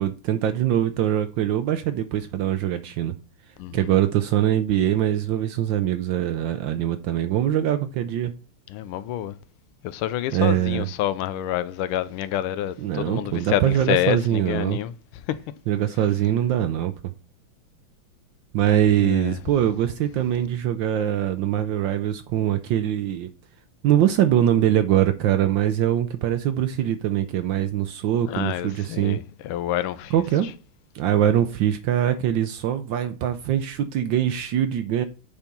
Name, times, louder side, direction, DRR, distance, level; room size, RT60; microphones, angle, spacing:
voice 1, 0.0-3.1 3.7-8.4 10.3-10.9 12.8-14.8 15.7-17.1 18.5-23.3 23.8-29.2 30.1-30.5 30.9-35.0, right 11 dB, 75° right, 1.2 m, -23 dB
voice 2, 3.6-3.9 8.7-9.3 9.8-14.9 15.3-15.4 19.0-19.4 28.3-30.2, left 12 dB, 80° left, 1.4 m, -27 dB
7.0 x 4.3 x 5.2 m
omnidirectional pair, 2.4 m